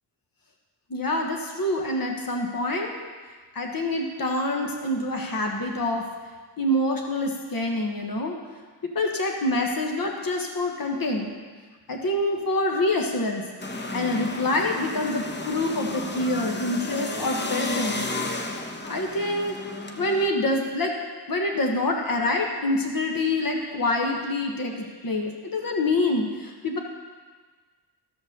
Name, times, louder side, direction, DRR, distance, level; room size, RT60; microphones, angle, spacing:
voice 1, 0.9-2.9 3.5-6.0 6.6-8.4 8.9-11.3 11.9-13.4 13.9-18.0 18.8-19.6 20.0-20.9 21.3-26.8, left 1 dB, 55° left, 1 dB, 1.3 m, -26 dB
sound 1, 13.6-20.3, left 2 dB, 25° left, 0.9 m, -32 dB
14.0 x 5.1 x 6.7 m, 1.5 s
wide cardioid pair, 115°, 42 cm